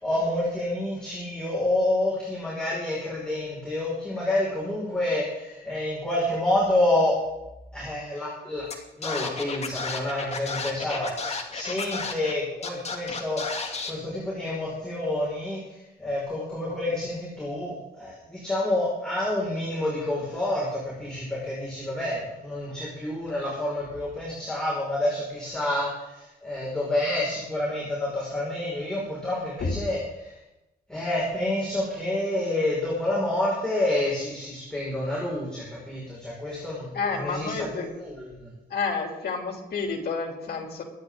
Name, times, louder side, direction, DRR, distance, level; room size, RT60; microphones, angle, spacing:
voice 1, 0.0-7.2 7.7-8.6 9.0-15.6 16.0-30.3 30.9-38.5, left 1 dB, 5° left, -7 dB, 5.6 m, -28 dB
Scratching (performance technique), 8.7-8.8 9.0-12.3 12.6-13.9, left 4 dB, 40° left, 2.4 m, -32 dB
voice 2, 36.9-37.9 38.7-40.8, left 4 dB, 70° left, 2 dB, 3.2 m, -29 dB
23.5 x 10.5 x 3.9 m, 0.94 s
wide cardioid pair, 130°, 17 cm